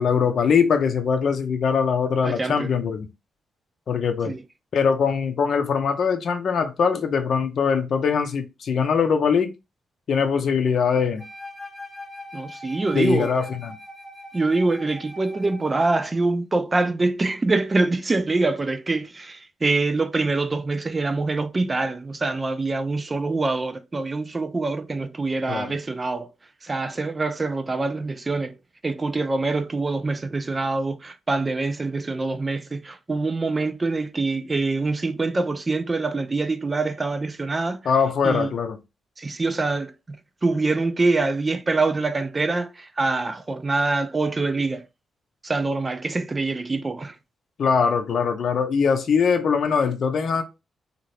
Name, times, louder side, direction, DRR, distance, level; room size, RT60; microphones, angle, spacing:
voice 1, 0.0-3.1 3.9-4.3 4.7-9.5 10.1-11.2 12.9-13.8 25.5-25.7 37.8-38.8 47.6-50.4, left 6 dB, 65° left, 0.6 m, -22 dB
voice 2, 2.2-2.7 4.3-4.4 12.3-13.3 14.3-26.3 26.6-28.5 28.8-37.9 38.2-38.5 39.2-40.2 40.4-44.8 45.4-47.1, right 3 dB, 30° right, 0.4 m, -25 dB
Wind instrument woodwind instrument, 11.2-16.2, left 1 dB, ahead, 1.0 m, -41 dB
2.7 x 2.5 x 3.2 m
cardioid pair, 70°, 0 cm